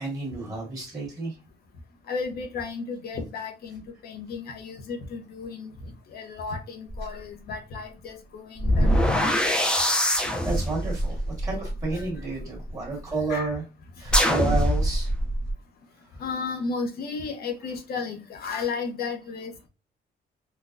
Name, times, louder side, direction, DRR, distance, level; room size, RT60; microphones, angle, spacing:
voice 1, 0.0-1.4 10.2-13.6 14.0-15.1 16.1-16.2, right 3 dB, 20° right, -3 dB, 1.8 m, -31 dB
voice 2, 2.1-5.7 6.1-9.3 11.6-12.0 13.3-13.6 16.2-19.7, left 4 dB, 60° left, 4 dB, 0.8 m, -34 dB
sound 1, 6.9-7.1 8.6-12.7 14.1-15.5, equal, 5° left, 0.5 m, -24 dB
3.9 x 2.2 x 2.5 m, 0.29 s
cardioid pair, 125°, 18 cm